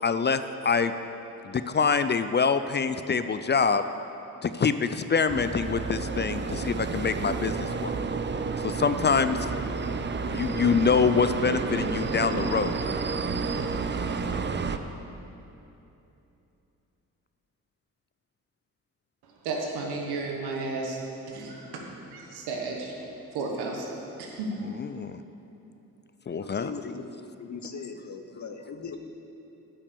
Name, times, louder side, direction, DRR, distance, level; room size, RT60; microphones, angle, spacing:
voice 1, 0.0-0.9 1.4-3.8 4.4-7.9 8.6-9.5 10.2-12.8 24.7-25.2 26.3-26.7, left 5 dB, 30° left, 11 dB, 0.4 m, -25 dB
sound 1, 5.3-14.8, right 4 dB, 30° right, 0.6 m, -30 dB
voice 2, 19.4-21.0 21.3-21.8 22.1-22.9 23.3-23.9 24.2-24.7, right 3 dB, 90° right, 0 dB, 1.3 m, -33 dB
voice 3, 26.3-27.1 27.4-29.0, left 5 dB, 50° left, 6 dB, 1.0 m, -39 dB
8.8 x 5.9 x 6.8 m, 2.9 s
supercardioid pair, 50°, 37 cm